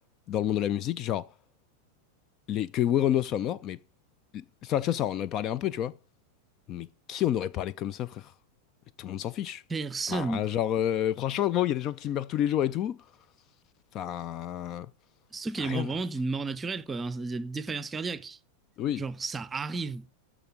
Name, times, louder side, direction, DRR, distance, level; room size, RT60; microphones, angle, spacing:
voice 1, 0.3-1.3 2.5-3.8 4.3-5.9 6.7-8.3 9.0-9.6 10.1-13.0 13.9-14.9 15.6-15.9 18.8-19.0, left 11 dB, 35° left, 0.3 m, -29 dB
voice 2, 9.7-10.5 15.3-18.4 19.0-20.0, right 3 dB, 15° right, 0.6 m, -32 dB
13.5 x 5.1 x 3.7 m
figure-of-eight pair, 90°, 0 cm